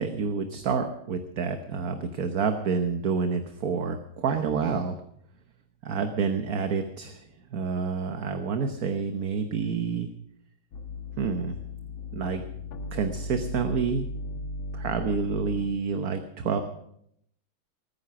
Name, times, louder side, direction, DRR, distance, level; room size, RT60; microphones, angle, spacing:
voice 1, 0.0-5.0 5.8-7.2 7.5-10.1 11.2-11.6 12.1-12.4 12.9-14.0 14.7-16.6, right 5 dB, 50° right, 7 dB, 1.3 m, -28 dB
sound 1, 10.7-15.7, left 2 dB, 80° left, 2.1 m, -37 dB
20.0 x 9.7 x 6.1 m, 0.73 s
omnidirectional pair, 2.2 m